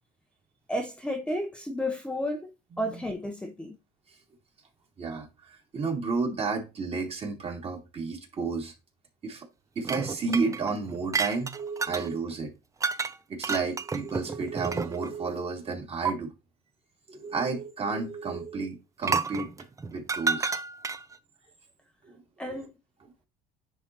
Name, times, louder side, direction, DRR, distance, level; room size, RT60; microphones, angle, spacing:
voice 1, 0.7-2.5 2.8-3.7 22.4-22.7, left 1 dB, 5° left, 0.9 m, -32 dB
voice 2, 5.0-8.7 9.2-9.5 9.8-12.5 13.3-16.3 17.1-19.5 19.9-20.5 22.0-22.2 22.5-22.6, right 4 dB, 35° right, 2.6 m, -32 dB
sound 1, 9.8-12.1 12.8-13.1 13.4-15.2 16.0-16.1 19.0-21.2, right 4 dB, 15° right, 0.6 m, -30 dB
10.0 x 4.0 x 3.0 m
supercardioid pair, 105°, 18 cm